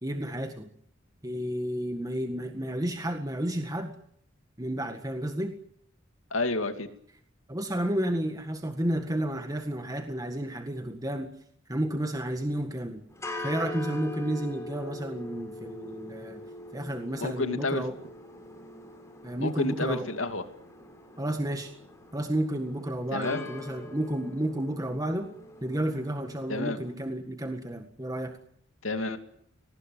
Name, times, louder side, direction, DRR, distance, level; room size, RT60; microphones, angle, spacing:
voice 1, 0.0-0.7 1.2-4.0 4.6-5.6 7.5-11.3 11.7-13.0 13.4-16.4 16.7-18.0 19.2-20.1 21.2-21.7 22.1-25.3 25.6-28.4, right 1 dB, 20° right, 6 dB, 1.8 m, -31 dB
voice 2, 6.3-6.9 17.2-17.8 19.4-20.4 23.1-23.4 26.5-26.8 28.8-29.2, left 2 dB, 75° left, 7 dB, 2.6 m, -29 dB
sound 1, 13.1-26.9, left 1 dB, 15° left, 6.0 m, -43 dB
23.0 x 19.5 x 9.6 m, 0.66 s
head